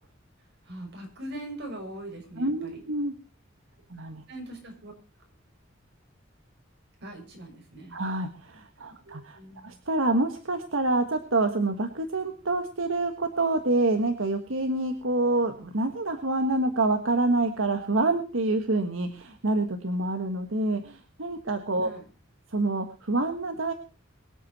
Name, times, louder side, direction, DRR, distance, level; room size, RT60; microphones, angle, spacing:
voice 1, 0.6-2.8 4.3-4.9 7.0-8.0 9.0-9.8 21.8-22.0, right 1 dB, 60° right, 2 dB, 6.2 m, -41 dB
voice 2, 2.4-3.1 3.9-4.2 7.9-21.9 22.5-23.7, right 2 dB, 85° right, 6 dB, 1.5 m, -27 dB
23.5 x 8.6 x 4.2 m, 0.34 s
head